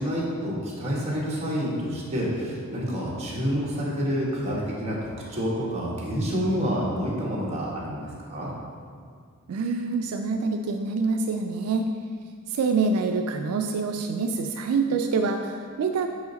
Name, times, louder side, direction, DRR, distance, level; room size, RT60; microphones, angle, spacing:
voice 1, 0.0-8.5, equal, 30° right, -5 dB, 1.3 m, -28 dB
voice 2, 9.5-11.9 12.5-16.1, right 4 dB, 80° right, 5 dB, 0.3 m, -26 dB
5.7 x 4.8 x 4.0 m, 2.1 s
head